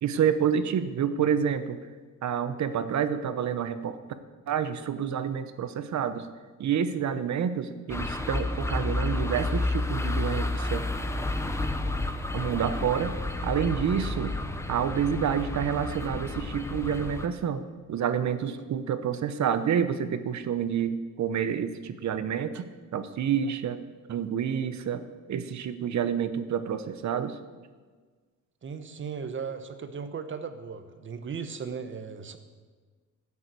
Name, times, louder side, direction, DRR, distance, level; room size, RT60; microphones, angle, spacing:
voice 1, 0.0-1.8 2.2-4.0 4.5-6.3 6.6-10.8 12.3-13.2 13.4-14.3 14.7-17.6 17.9-23.8 24.1-25.0 25.3-27.4, right 8 dB, 60° right, 11 dB, 1.0 m, -28 dB
sound 1, 7.9-17.3, left 2 dB, 10° left, 0.8 m, -31 dB
voice 2, 28.6-32.4, right 6 dB, 40° right, 9 dB, 1.1 m, -37 dB
14.0 x 7.2 x 8.4 m, 1.5 s
cardioid pair, 135°, 32 cm